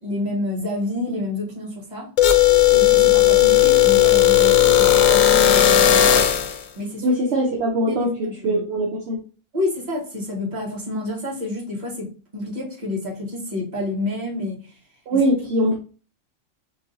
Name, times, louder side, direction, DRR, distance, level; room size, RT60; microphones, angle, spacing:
voice 1, 0.0-2.1 2.7-6.2 6.7-7.2 7.9-8.6 9.5-14.8 15.1-15.2, left 2 dB, 35° right, 1.4 m, -29 dB
sound 1, 2.2-6.6, left 11 dB, 85° left, 1.0 m, -15 dB
voice 2, 7.0-8.1 8.4-9.2 15.1-15.8, right 1 dB, 60° right, 1.0 m, -21 dB
5.2 x 2.7 x 2.7 m
omnidirectional pair, 1.3 m